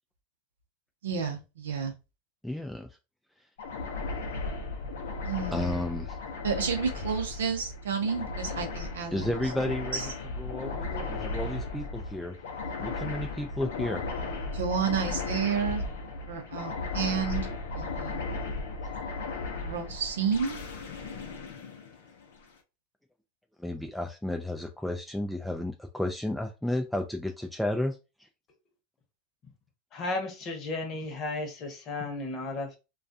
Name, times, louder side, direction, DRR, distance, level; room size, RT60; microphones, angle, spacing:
voice 1, 1.0-1.9 5.2-5.8 6.4-9.3 9.9-10.0 14.5-18.4 19.6-20.6, right 6 dB, 85° right, 0.6 m, -31 dB
voice 2, 2.4-2.9 5.5-6.2 9.1-10.0 10.4-12.3 12.8-14.0 23.6-28.3, left 1 dB, 5° left, 0.3 m, -32 dB
sound 1, 3.6-22.4, left 3 dB, 80° left, 0.6 m, -36 dB
voice 3, 29.9-32.8, left 2 dB, 45° left, 0.9 m, -34 dB
2.3 x 2.3 x 2.6 m
hypercardioid pair, 95°, 0 cm